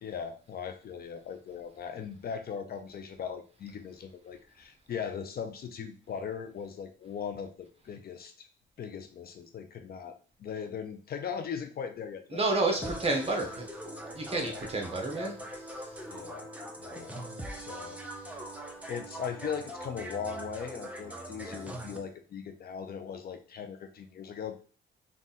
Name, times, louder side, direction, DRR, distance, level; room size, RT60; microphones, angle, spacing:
voice 1, 0.0-8.5 8.8-12.4 14.3-14.6 16.1-16.5 16.8-17.1 17.5-18.0 18.9-24.6, left 7 dB, 50° left, 7 dB, 0.6 m, -39 dB
voice 2, 12.3-13.7 14.1-15.9, right 2 dB, 30° right, 2 dB, 1.3 m, -30 dB
sound 1, 12.8-22.0, right 1 dB, 5° right, 0.8 m, -42 dB
3.8 x 2.4 x 4.0 m, 0.39 s
cardioid pair, 90°, 20 cm